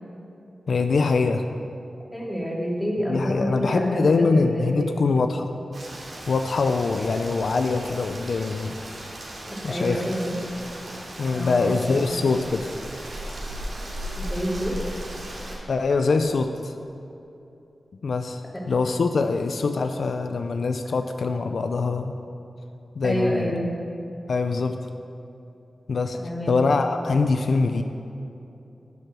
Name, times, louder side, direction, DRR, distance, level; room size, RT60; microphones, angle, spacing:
voice 1, 0.7-1.5 3.1-5.5 6.3-8.8 9.6-10.0 11.2-12.7 15.7-16.7 18.0-22.1 23.0-23.5 24.3-24.9 25.9-26.2 26.5-27.8, left 4 dB, 75° left, 6 dB, 0.5 m, -23 dB
voice 2, 2.1-5.0 9.5-10.3 11.3-12.0 14.2-14.8 18.5-18.6 23.0-23.7 26.2-26.6, equal, 10° left, -4 dB, 2.3 m, -28 dB
Rain, 5.7-15.6, right 1 dB, 60° right, 2.5 m, -37 dB
10.5 x 8.0 x 6.1 m, 2.8 s
wide cardioid pair, 100°, 0 cm